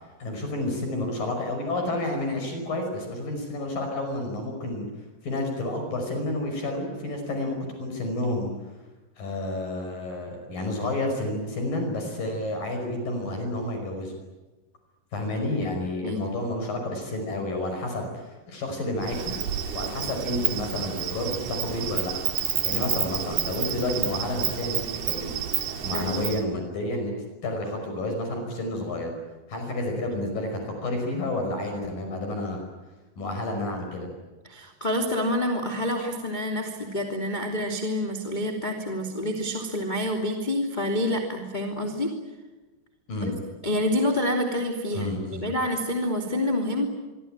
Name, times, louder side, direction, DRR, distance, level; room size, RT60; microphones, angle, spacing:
voice 1, 0.2-4.9 5.2-8.5 9.2-14.1 15.1-19.4 19.7-22.1 22.6-25.4 25.8-27.2 27.4-29.1 29.5-32.6 33.2-34.1 43.1-43.3 44.9-45.5, left 1 dB, 50° left, 4 dB, 7.0 m, -30 dB
Insect, 19.0-26.4, right 9 dB, 65° right, 4.0 m, -30 dB
voice 2, 34.4-42.2 43.2-43.3 43.6-46.9, left 1 dB, 15° left, 2 dB, 2.3 m, -27 dB
26.5 x 24.0 x 9.0 m, 1.2 s
omnidirectional pair, 5.1 m